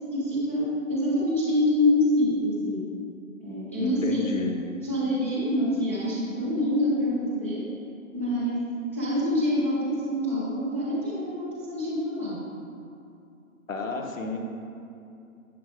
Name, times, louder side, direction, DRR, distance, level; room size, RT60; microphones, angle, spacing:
voice 1, 0.1-2.8 3.4-4.5 4.7-7.6 8.1-8.6 8.9-12.4, left 1 dB, 10° left, -10 dB, 0.6 m, -26 dB
voice 2, 3.8-4.5 13.7-14.4, left 3 dB, 65° left, 3 dB, 1.3 m, -31 dB
10.5 x 7.7 x 3.3 m, 2.6 s
figure-of-eight pair, 140°, 42 cm